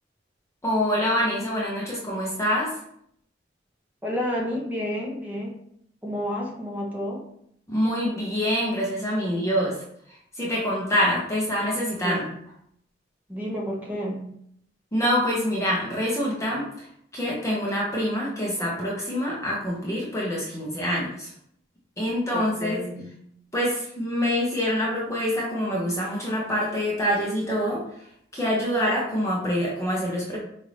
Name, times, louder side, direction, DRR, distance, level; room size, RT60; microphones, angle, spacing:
voice 1, 0.6-2.7 7.7-9.8 10.3-12.2 14.9-16.9 17.1-21.3 22.0-22.8 23.5-27.8 28.3-30.4, equal, 15° left, -4 dB, 0.8 m, -25 dB
voice 2, 4.0-5.5 6.0-7.2 12.0-12.3 13.3-14.3 22.3-23.1, equal, 10° right, -3 dB, 1.0 m, -30 dB
5.0 x 2.7 x 3.2 m, 0.70 s
head